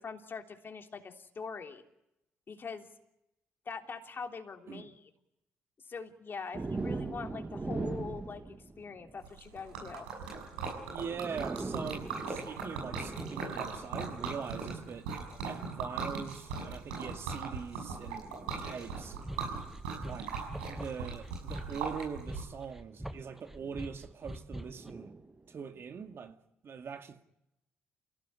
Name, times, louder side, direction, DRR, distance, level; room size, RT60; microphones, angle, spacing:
voice 1, 0.0-1.8 2.5-2.9 3.6-5.1 5.9-10.1, left 5 dB, 40° left, 3.2 m, -43 dB
sound 1, 6.5-9.3 10.6-10.7 11.0-14.6 15.4-15.7 16.9-19.8 21.3-21.5 23.2-23.9 24.7-26.1, right 3 dB, 25° right, 2.1 m, -42 dB
Liquid, 9.2-22.4, right 4 dB, 80° right, 6.7 m, -39 dB
voice 2, 10.9-15.1 15.4-18.3 18.6-19.2 20.0-20.3 20.7-25.1 25.5-27.2, right 6 dB, 50° right, 2.2 m, -42 dB
sound 2, 19.0-24.9, right 1 dB, 5° right, 1.7 m, -44 dB
28.5 x 16.5 x 9.9 m
hypercardioid pair, 45°, 5 cm